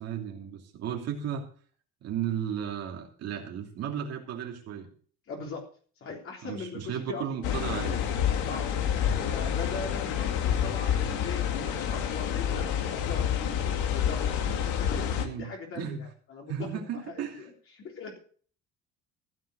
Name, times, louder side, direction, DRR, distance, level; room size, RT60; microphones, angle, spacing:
voice 1, 0.0-1.5 2.0-4.9 6.4-8.0 15.2-15.5 15.7-16.0 16.5-17.5, right 8 dB, 60° right, 1 dB, 2.9 m, -34 dB
voice 2, 5.3-5.6 6.0-7.2 8.5-8.7 9.0-14.4 14.8-16.5 17.1-18.2, left 4 dB, 45° left, 0 dB, 3.7 m, -40 dB
sound 1, 7.4-15.3, left 9 dB, 90° left, 2.3 m, -28 dB
15.5 x 7.6 x 6.4 m, 0.43 s
cardioid pair, 125°, 29 cm